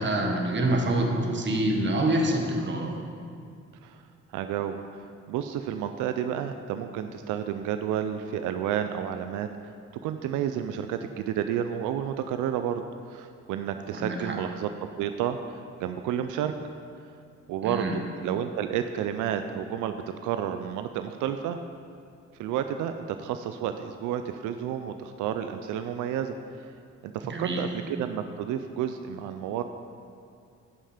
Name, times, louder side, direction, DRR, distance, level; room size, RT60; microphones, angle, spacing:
voice 1, 0.0-2.9 13.9-14.4 17.6-17.9 27.2-27.6, right 1 dB, 40° right, 2 dB, 1.4 m, -26 dB
voice 2, 4.3-9.5 10.0-12.8 13.1-14.7 15.0-16.5 17.5-21.6 22.4-22.9 23.2-26.7 27.0-29.6, right 9 dB, 90° right, 8 dB, 0.5 m, -31 dB
11.0 x 5.6 x 5.0 m, 2.4 s
cardioid pair, 90°, 30 cm